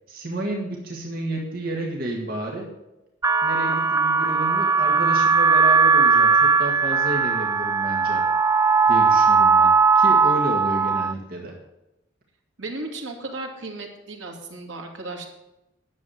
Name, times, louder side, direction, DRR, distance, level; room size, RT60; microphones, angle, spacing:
voice 1, 0.1-2.7 3.4-8.2 8.9-11.5, right 1 dB, 50° right, -1 dB, 2.0 m, -31 dB
sound 1, 3.2-11.1, right 5 dB, 15° right, 0.3 m, -18 dB
voice 2, 12.6-15.3, right 2 dB, 75° right, 2 dB, 2.5 m, -35 dB
11.0 x 7.6 x 7.9 m, 0.95 s
head